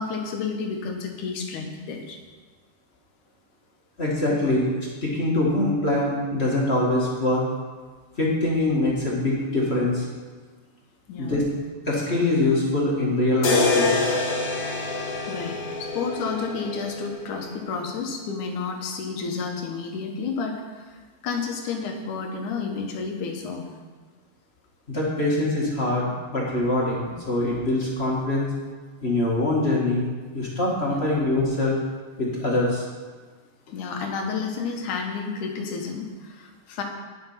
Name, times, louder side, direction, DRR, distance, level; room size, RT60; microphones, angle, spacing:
voice 1, 0.0-2.2 11.1-11.5 15.3-23.7 30.9-31.2 33.7-36.8, left 5 dB, 80° left, 2 dB, 2.8 m, -31 dB
voice 2, 4.0-4.7 5.0-7.5 8.2-10.1 11.2-11.4 11.9-14.0 24.9-28.5 29.0-30.1 30.3-31.8 32.2-32.8, left 2 dB, 25° left, -4 dB, 1.9 m, -23 dB
sound 1, 13.4-17.5, left 3 dB, 55° left, 2.4 m, -26 dB
10.5 x 7.8 x 5.8 m, 1.4 s
omnidirectional pair, 3.5 m